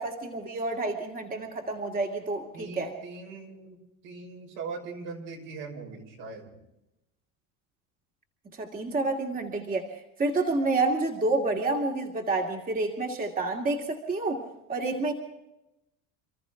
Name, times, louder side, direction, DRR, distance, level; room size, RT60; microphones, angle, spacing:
voice 1, 0.0-2.9 8.5-14.4 14.7-15.1, right 2 dB, 25° right, 1 dB, 2.4 m, -29 dB
voice 2, 2.5-3.8 4.0-6.5, right 4 dB, 70° right, 1 dB, 6.0 m, -40 dB
29.5 x 14.0 x 3.5 m, 0.91 s
supercardioid pair, 110°, 35 cm